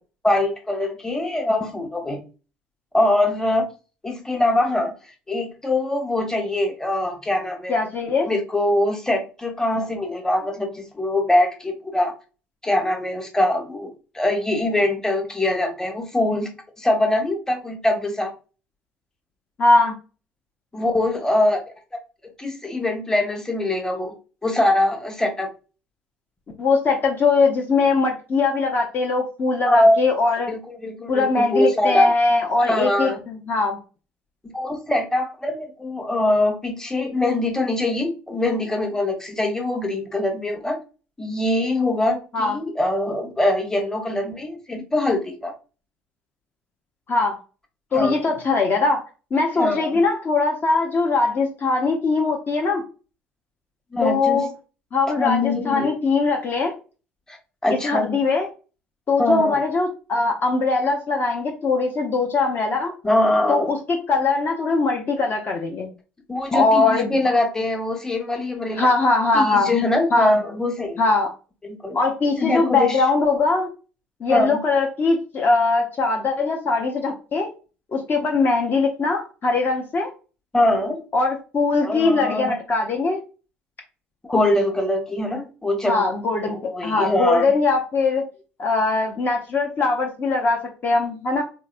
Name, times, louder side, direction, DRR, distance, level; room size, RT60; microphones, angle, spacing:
voice 1, 0.2-2.2 2.9-3.7 4.0-4.9 5.3-7.8 8.3-12.1 12.6-16.5 16.8-18.3 20.7-21.6 22.4-24.1 24.4-25.5 29.6-30.0 30.5-32.1 32.6-33.2 34.5-40.8 41.2-45.5 47.9-48.2 49.6-50.0 53.9-54.4 55.2-56.0 57.3-57.4 57.6-58.2 59.2-59.6 63.0-63.7 66.3-68.9 69.3-71.0 71.8-72.0 72.4-73.0 74.3-74.6 80.5-81.0 81.8-82.6 84.2-86.1 86.5-87.5, left 1 dB, 10° left, 3 dB, 1.0 m, -22 dB
voice 2, 7.7-8.3 19.6-19.9 26.6-30.5 31.1-33.8 42.3-42.6 47.1-47.4 47.9-49.0 49.3-52.8 54.0-54.5 54.9-56.7 57.7-58.5 59.1-62.9 63.5-65.9 66.5-67.2 68.8-69.7 70.1-70.4 71.0-71.3 71.9-73.7 74.2-77.5 77.9-80.1 81.1-83.2 85.8-86.6 86.8-88.3 88.6-91.4, left 3 dB, 35° left, 1 dB, 0.7 m, -21 dB
4.0 x 2.6 x 2.4 m, 0.34 s
figure-of-eight pair, 55°, 6 cm